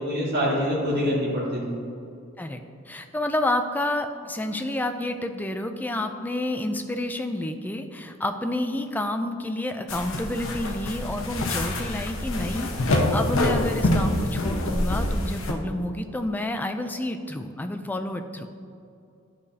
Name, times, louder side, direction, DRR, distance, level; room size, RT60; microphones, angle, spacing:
voice 1, 0.0-1.8, equal, 50° right, -8 dB, 1.7 m, -25 dB
voice 2, 2.9-18.5, left 1 dB, 10° left, 6 dB, 0.3 m, -29 dB
sound 1, 9.9-15.5, left 1 dB, 75° left, 0.8 m, -26 dB
11.5 x 5.0 x 2.8 m, 2.5 s
head